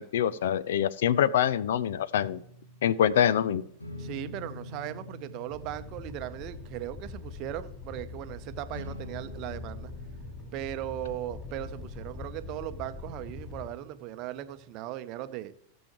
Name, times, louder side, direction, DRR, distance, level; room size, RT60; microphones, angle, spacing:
voice 1, 0.0-2.4 2.8-3.7, left 9 dB, 60° left, 18 dB, 0.4 m, -25 dB
sound 1, 2.1-14.7, left 1 dB, 80° left, 1.8 m, -47 dB
voice 2, 4.0-9.9 10.5-15.5, right 13 dB, 40° right, 12 dB, 0.8 m, -38 dB
Animal, 5.5-13.7, left 4 dB, 15° left, 4.3 m, -43 dB
17.0 x 7.3 x 3.0 m, 0.71 s
figure-of-eight pair, 90°, 0 cm